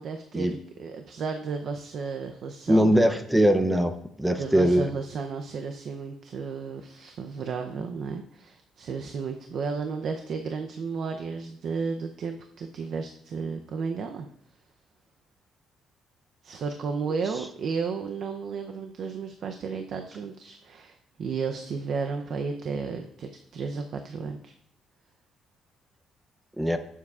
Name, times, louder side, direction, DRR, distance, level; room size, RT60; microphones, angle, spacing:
voice 1, 0.0-3.1 4.3-14.3 16.4-24.5, right 5 dB, 55° right, 5 dB, 0.6 m, -33 dB
voice 2, 2.7-3.9 4.2-4.9 17.1-17.2 26.6-26.8, equal, 5° right, 8 dB, 0.6 m, -21 dB
17.5 x 7.3 x 2.4 m, 0.72 s
cardioid pair, 150°, 0 cm